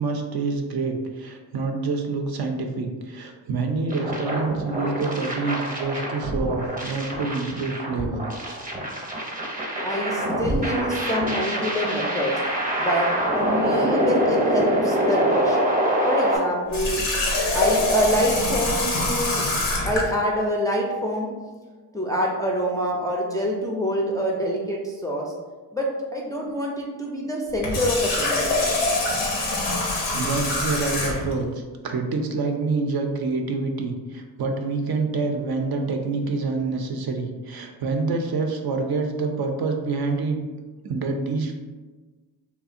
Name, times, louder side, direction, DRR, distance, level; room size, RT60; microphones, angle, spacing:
voice 1, 0.0-8.3 26.3-26.5 30.1-40.4 40.8-41.5, right 3 dB, 55° right, 3 dB, 0.5 m, -27 dB
sound 1, 3.9-16.4, right 1 dB, 20° right, 0.7 m, -25 dB
voice 2, 9.8-12.3 12.8-13.1 13.3-15.6 16.0-17.0 17.5-19.4 19.8-21.3 21.9-25.3 25.7-28.6, equal, 10° left, -2 dB, 0.4 m, -26 dB
Water tap faucet, 16.7-20.1 27.5-31.3, left 2 dB, 85° left, 0.7 m, -24 dB
2.7 x 2.1 x 2.4 m, 1.3 s
supercardioid pair, 45°, 46 cm